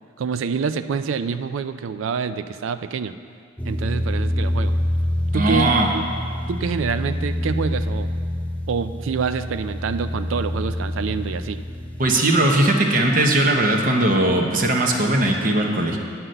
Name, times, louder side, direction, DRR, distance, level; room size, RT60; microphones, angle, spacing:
voice 1, 0.2-3.2 3.6-4.7 5.3-6.0 6.5-8.1 8.7-11.6, right 5 dB, 85° right, 11 dB, 0.4 m, -26 dB
sound 1, 3.6-12.1, left 1 dB, 5° left, 0.4 m, -26 dB
voice 2, 5.3-5.9 12.0-16.0, right 1 dB, 45° right, 2 dB, 0.9 m, -19 dB
9.4 x 5.9 x 7.8 m, 2.2 s
head